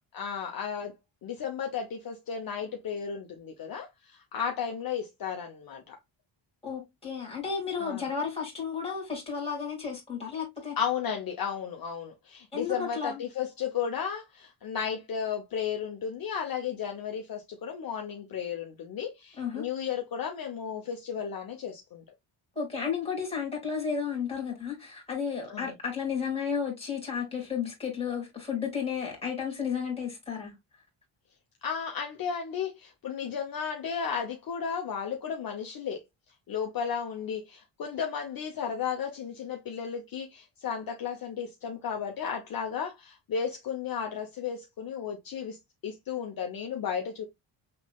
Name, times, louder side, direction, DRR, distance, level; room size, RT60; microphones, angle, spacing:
voice 1, 0.1-0.9 1.2-6.0 7.7-8.1 10.8-22.0 25.5-25.7 31.6-36.0 36.5-45.6 45.8-47.3, left 7 dB, 45° left, 0.8 m, -34 dB
voice 2, 6.6-10.8 12.5-13.2 19.4-19.6 22.6-30.5, left 6 dB, 10° left, 2.1 m, -33 dB
6.0 x 3.1 x 2.2 m
wide cardioid pair, 170°, 49 cm